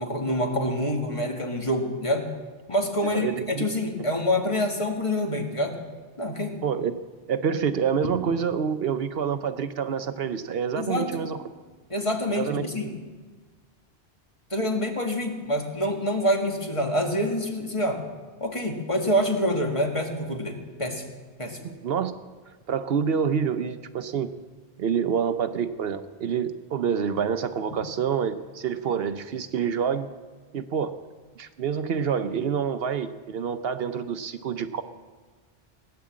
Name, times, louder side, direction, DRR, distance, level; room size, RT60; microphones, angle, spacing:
voice 1, 0.0-2.3 2.7-5.8 6.2-6.6 10.8-11.3 11.9-13.0 14.5-18.0 18.4-21.1 21.4-21.6, equal, 30° left, 2 dB, 1.8 m, -26 dB
voice 2, 3.0-3.7 6.6-7.0 7.3-11.4 12.3-12.8 21.6-22.1 22.7-24.3 24.8-30.1 30.5-30.9 31.4-34.8, right 7 dB, 70° right, 10 dB, 0.9 m, -27 dB
17.5 x 9.5 x 7.4 m, 1.4 s
omnidirectional pair, 1.1 m